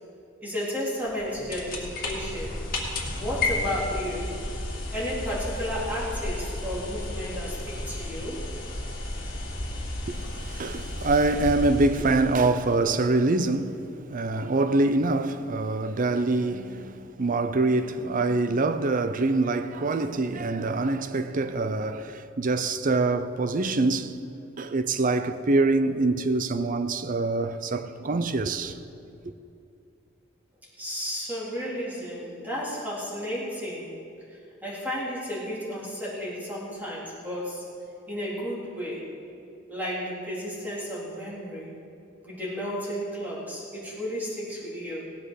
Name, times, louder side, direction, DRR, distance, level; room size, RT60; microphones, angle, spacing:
voice 1, 0.4-2.6 3.2-4.3 4.9-8.4 30.8-33.9 34.3-37.6 38.1-39.1 39.7-41.7 42.2-45.0, equal, 10° right, 3.7 m, -33 dB
sound 1, 1.0-12.8, left 2 dB, 50° left, 2.2 m, -33 dB
voice 2, 10.1-24.2 24.6-28.8, right 3 dB, 40° right, 0.6 m, -25 dB
18.0 x 7.8 x 6.5 m
head